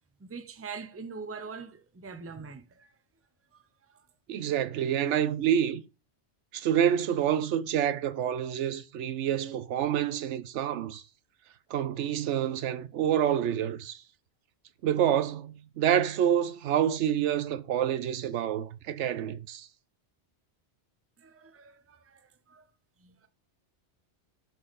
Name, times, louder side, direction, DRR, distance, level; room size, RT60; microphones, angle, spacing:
voice 1, 0.2-2.9 3.5-3.6 3.9-4.0 21.2-22.6 23.0-23.3, right 5 dB, 15° right, 0.5 m, -43 dB
voice 2, 4.3-5.8 6.5-11.0 11.7-14.0 14.8-19.7, right 10 dB, 90° right, 1.0 m, -27 dB
6.2 x 5.4 x 4.0 m
omnidirectional pair, 1.2 m